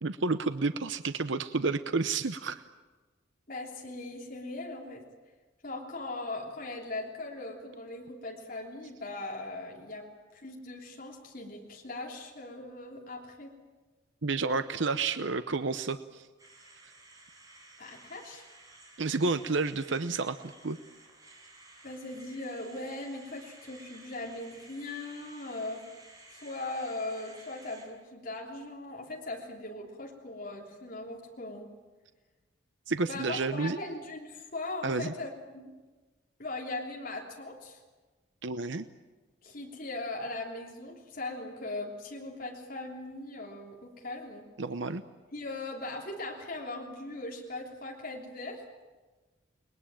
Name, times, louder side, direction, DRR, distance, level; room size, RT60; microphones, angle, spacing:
voice 1, 0.0-2.6 14.2-16.3 19.0-20.8 32.9-33.8 34.8-35.1 38.4-38.9 44.6-45.0, right 3 dB, 75° right, 11 dB, 0.8 m, -30 dB
voice 2, 3.5-5.0 5.6-13.5 17.8-18.4 21.8-25.8 26.3-31.7 33.1-35.7 36.4-37.8 39.4-44.5 45.3-48.6, left 2 dB, 45° left, -1 dB, 3.3 m, -39 dB
sound 1, 16.4-27.9, right 2 dB, 20° right, 6.2 m, -54 dB
29.5 x 21.0 x 9.0 m, 1.3 s
head